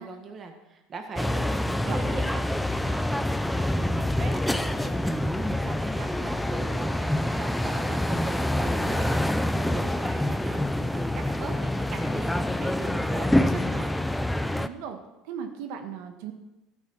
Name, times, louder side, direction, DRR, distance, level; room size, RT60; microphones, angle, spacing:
voice 1, 0.0-2.2 2.8-3.0 3.5-13.9, right 4 dB, 25° right, 4 dB, 1.4 m, -40 dB
sound 1, 1.2-14.7, left 1 dB, 5° left, 0.4 m, -26 dB
voice 2, 1.8-2.4 14.5-15.0 15.3-16.3, right 7 dB, 75° right, 5 dB, 1.4 m, -38 dB
13.5 x 8.3 x 5.8 m, 0.98 s
cardioid pair, 160°, 0 cm